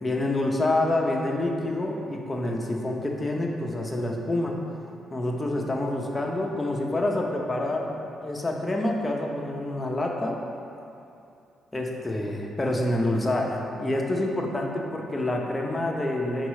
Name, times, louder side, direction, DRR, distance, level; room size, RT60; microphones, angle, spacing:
voice 1, 0.0-4.6 5.1-8.0 8.2-10.4 11.7-16.5, left 1 dB, 20° left, 0 dB, 0.8 m, -27 dB
5.1 x 4.1 x 4.8 m, 2.6 s
cardioid pair, 90°, 0 cm